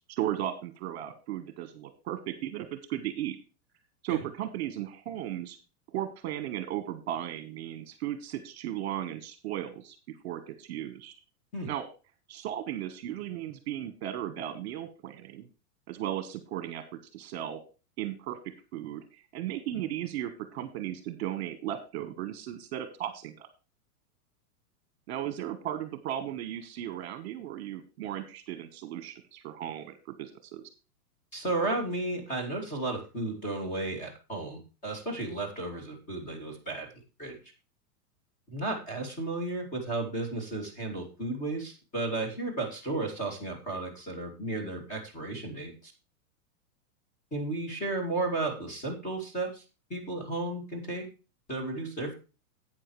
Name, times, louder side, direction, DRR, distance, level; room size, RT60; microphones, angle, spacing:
voice 1, 0.0-3.4 4.0-5.6 5.9-11.1 11.7-11.8 12.3-15.5 15.9-16.8 17.1-17.6 18.0-23.5 25.1-30.6, right 12 dB, 45° right, 10 dB, 1.4 m, -36 dB
voice 2, 31.3-36.9 37.2-37.4 38.5-45.9 47.3-49.6 49.9-51.1 51.5-52.1, right 2 dB, 15° left, 3 dB, 2.5 m, -33 dB
12.0 x 8.8 x 3.1 m, 0.32 s
supercardioid pair, 175°, 46 cm